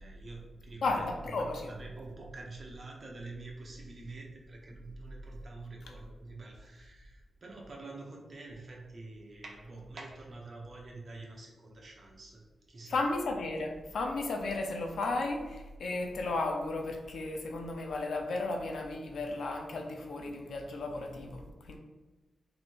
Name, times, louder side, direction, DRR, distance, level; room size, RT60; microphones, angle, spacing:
voice 1, 0.0-1.0 1.4-13.0, right 2 dB, 45° right, -1 dB, 0.8 m, -47 dB
voice 2, 0.8-1.7 12.9-21.8, left 2 dB, 85° left, 2 dB, 0.6 m, -34 dB
3.1 x 2.6 x 4.5 m, 1.2 s
wide cardioid pair, 135°, 0 cm